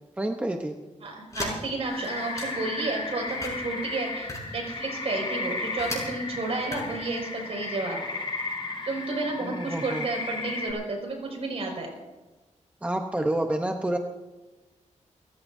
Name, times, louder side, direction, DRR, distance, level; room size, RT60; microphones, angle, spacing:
voice 1, 0.2-0.7 9.4-10.0 12.8-14.0, right 1 dB, 10° right, 3 dB, 0.9 m, -28 dB
voice 2, 1.0-8.0 8.9-11.9, right 2 dB, 55° right, 1 dB, 5.6 m, -31 dB
sound 1, 1.3-2.7 3.2-6.0 6.5-7.2, left 2 dB, 25° left, 5.9 m, -37 dB
sound 2, 1.8-10.7, left 3 dB, 40° left, 6.6 m, -34 dB
29.0 x 15.0 x 2.7 m, 1.2 s
wide cardioid pair, 145°, 12 cm